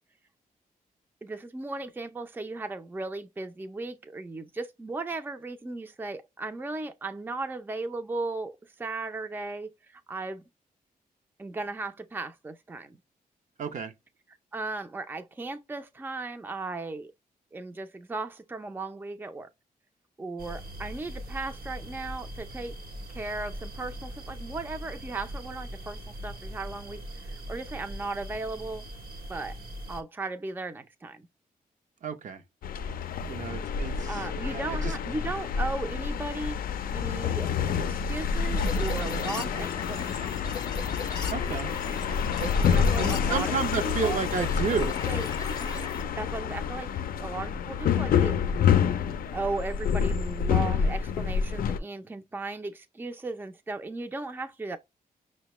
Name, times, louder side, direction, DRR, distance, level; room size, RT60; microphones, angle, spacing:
voice 1, 1.2-10.4 11.4-13.0 14.5-17.1 17.5-19.5 20.2-22.8 23.1-28.8 29.3-29.6 29.9-31.3 34.1-36.6 36.9-40.3 42.6-43.5 43.9-44.2 44.8-45.3 46.1-46.9 47.2-48.6 49.3-54.8, right 3 dB, 15° right, 0.4 m, -36 dB
voice 2, 13.6-13.9 32.0-32.4 33.3-35.0 41.3-41.7 42.4-45.0, right 6 dB, 55° right, 0.6 m, -32 dB
sound 1, 20.4-30.0, equal, 80° right, 1.1 m, -41 dB
sound 2, 32.6-51.8, left 7 dB, 75° left, 0.4 m, -28 dB
sound 3, 38.6-46.0, left 4 dB, 25° left, 0.6 m, -39 dB
5.6 x 2.2 x 3.0 m
wide cardioid pair, 125°, 15 cm